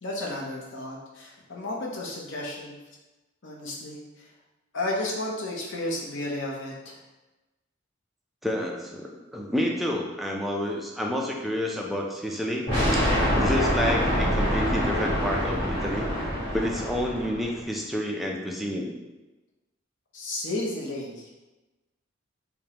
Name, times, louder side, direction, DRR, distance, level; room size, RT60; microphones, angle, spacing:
voice 1, 0.0-2.8 3.4-4.0 4.7-7.0 20.1-21.5, left 1 dB, 65° left, -2 dB, 0.8 m, -33 dB
voice 2, 8.4-12.7 12.9-13.0 13.4-16.1 16.5-19.0, equal, ahead, -1 dB, 0.4 m, -29 dB
sound 1, 12.7-17.5, equal, 25° left, 1.3 m, -25 dB
4.8 x 2.2 x 2.9 m, 1.1 s
head